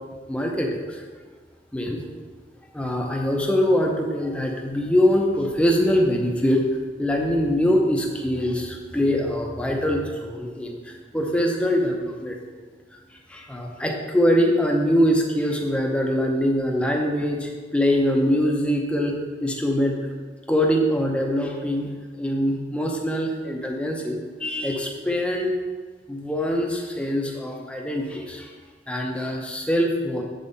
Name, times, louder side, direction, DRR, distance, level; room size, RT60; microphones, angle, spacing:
voice 1, 0.3-1.0 1.7-2.0 2.7-6.6 7.0-12.4 12.9-13.0 13.3-19.2 19.4-20.0 20.5-21.9 22.2-25.5 26.1-28.5 28.9-30.2, equal, 5° left, 0 dB, 0.8 m, -23 dB
7.6 x 5.4 x 4.1 m, 1.5 s
head